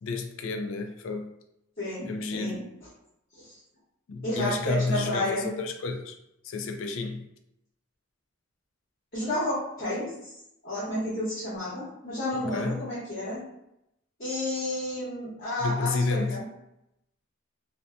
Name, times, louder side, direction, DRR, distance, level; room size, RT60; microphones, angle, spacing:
voice 1, 0.0-1.3 2.1-2.6 4.1-6.2 6.4-7.3 12.3-12.8 15.6-16.4, left 3 dB, 65° left, 6 dB, 0.3 m, -30 dB
voice 2, 4.2-5.4 9.1-10.1 10.6-13.4 14.2-16.4, left 1 dB, 45° left, -10 dB, 1.0 m, -31 dB
2.6 x 2.1 x 2.4 m, 0.83 s
head